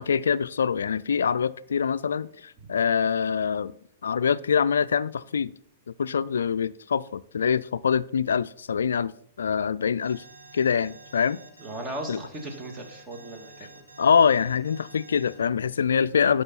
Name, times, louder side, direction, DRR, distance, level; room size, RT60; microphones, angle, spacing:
voice 1, 0.0-3.7 4.0-5.5 6.0-9.1 9.4-10.2 10.5-11.4 12.1-12.2 14.0-16.4, left 7 dB, 75° left, 0.3 m, -24 dB
Alarm, 10.0-15.3, right 3 dB, 85° right, 1.9 m, -49 dB
voice 2, 11.6-13.8, right 1 dB, 25° right, 2.2 m, -37 dB
12.0 x 5.3 x 4.2 m
figure-of-eight pair, 105°, 0 cm